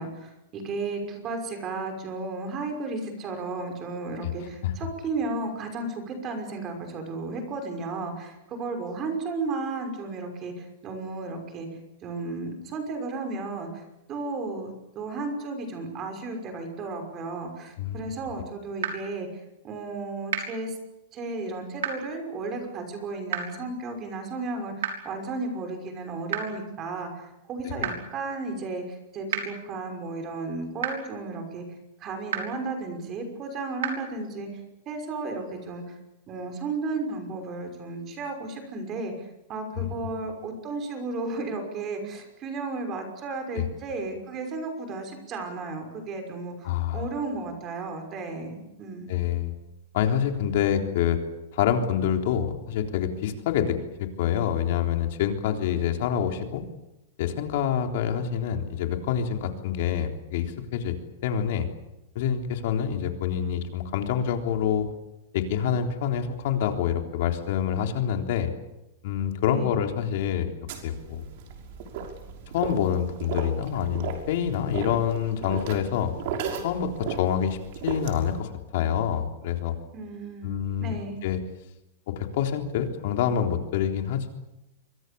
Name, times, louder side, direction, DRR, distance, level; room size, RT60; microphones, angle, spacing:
voice 1, 0.0-11.7 12.0-13.8 14.1-14.7 14.9-20.8 21.1-31.6 32.0-34.6 34.9-35.9 36.3-49.2 69.4-69.8 79.9-81.2, right 3 dB, 25° right, 5 dB, 5.9 m, -34 dB
voice 2, 17.8-18.1 27.6-27.9 39.8-39.9 43.5-43.7 46.6-47.1 49.1-49.5 49.9-51.2 51.5-56.6 57.2-61.0 61.2-61.7 62.2-64.9 65.3-68.5 69.0-70.5 70.8-71.2 72.5-76.1 76.6-77.6 77.8-79.8 80.4-81.4 82.1-84.3, left 9 dB, 55° left, 4 dB, 3.7 m, -26 dB
sound 1, 18.8-18.9 20.3-20.4 21.8-21.9 23.3-23.4 24.8-24.9 26.3-26.4 27.8-27.9 29.3-29.4 30.8-30.9 32.3-32.4 33.8-33.9, right 9 dB, 85° right, 6.2 m, -27 dB
sound 2, 70.7-78.4, right 6 dB, 50° right, 6.0 m, -36 dB
28.0 x 23.5 x 7.1 m, 0.93 s
supercardioid pair, 165°, 0 cm